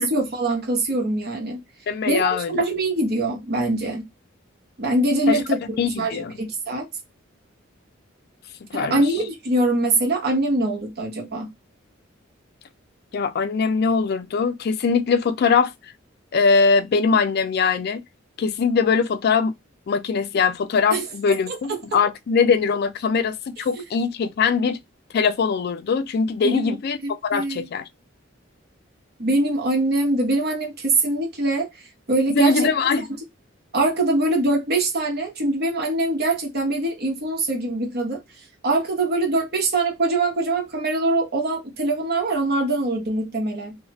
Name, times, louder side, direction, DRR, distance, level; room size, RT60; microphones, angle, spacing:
voice 1, 0.1-1.6 2.1-4.1 4.8-5.6 6.0-6.9 8.7-11.5 20.9-21.1 21.7-21.8 23.7-23.8 26.4-26.8 27.0-27.7 29.2-31.7 32.1-32.7 33.7-38.2 38.6-43.8, right 2 dB, 55° right, 1.0 m, -23 dB
voice 2, 1.9-2.6 5.3-5.4 5.8-6.3 8.7-9.0 13.1-15.7 16.3-18.0 18.4-19.5 19.9-24.8 25.1-27.0 27.2-27.9 32.3-33.1, left 5 dB, 55° left, 0.3 m, -21 dB
2.7 x 2.4 x 3.0 m
head